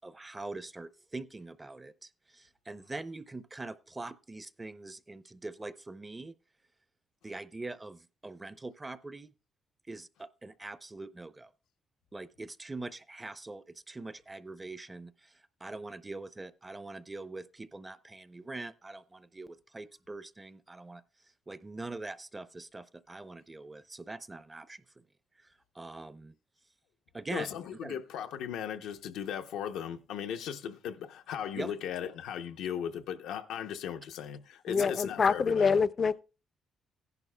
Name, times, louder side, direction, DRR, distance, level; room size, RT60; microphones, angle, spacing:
voice 1, 0.0-6.3 7.2-9.3 9.9-11.5 12.1-21.0 21.5-24.8 25.4-26.3 27.1-28.0 31.5-31.7 34.7-34.9, right 2 dB, 20° right, 0.5 m, -43 dB
voice 2, 27.3-35.8, left 9 dB, 90° left, 0.6 m, -37 dB
voice 3, 34.7-36.2, left 5 dB, 40° left, 0.4 m, -26 dB
15.5 x 11.0 x 2.2 m
cardioid pair, 90°, 0 cm